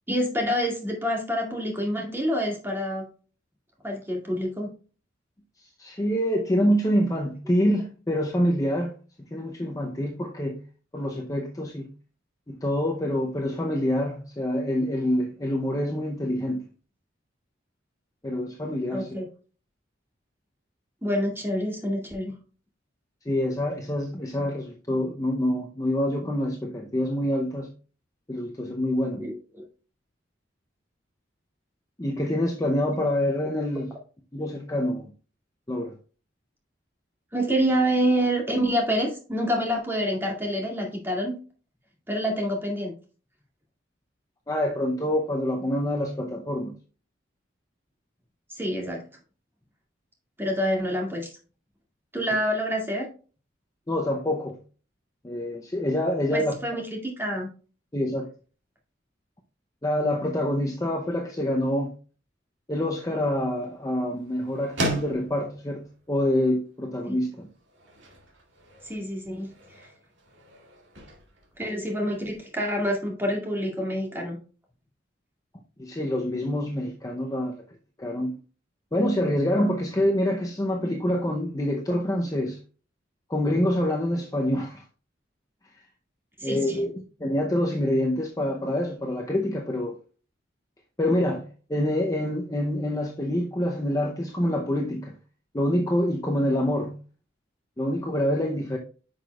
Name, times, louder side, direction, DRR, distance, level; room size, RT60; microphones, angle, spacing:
voice 1, 0.1-3.1 3.8-4.7 18.9-19.3 21.0-22.4 29.2-29.6 37.3-41.3 42.1-42.9 48.5-49.0 50.4-51.3 52.1-53.1 56.3-57.5 67.1-67.2 68.8-69.5 69.8-69.9 71.6-74.4 86.4-86.8, equal, 10° right, 2.1 m, -27 dB
voice 2, 5.8-8.9 9.3-10.6 10.9-11.9 12.5-16.6 18.2-19.1 23.3-27.7 28.3-29.2 32.0-33.9 34.3-35.1 35.7-35.9 44.5-46.7 53.9-54.6 55.2-56.5 57.9-58.3 59.8-61.9 62.7-67.5 75.8-77.6 78.0-78.4 78.9-82.6 83.3-84.8 86.4-86.9 87.2-90.0 91.0-95.1 95.5-96.9 97.8-98.8, left 1 dB, 20° left, 0.6 m, -26 dB
sound 1, 62.7-72.5, equal, 65° right, 2.2 m, -39 dB
9.8 x 5.9 x 2.3 m
head